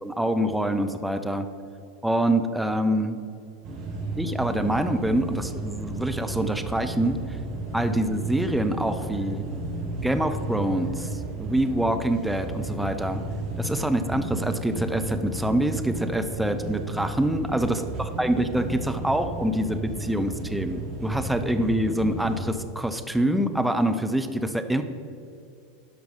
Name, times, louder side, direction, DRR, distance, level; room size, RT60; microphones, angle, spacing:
voice 1, 0.0-1.5 2.0-3.2 4.2-7.2 7.7-9.4 10.0-13.2 13.6-24.8, right 1 dB, 5° right, 7 dB, 0.7 m, -25 dB
sound 1, 3.6-22.5, right 2 dB, 50° right, 2.0 m, -33 dB
12.0 x 5.1 x 4.9 m, 2.5 s
figure-of-eight pair, 85°, 0 cm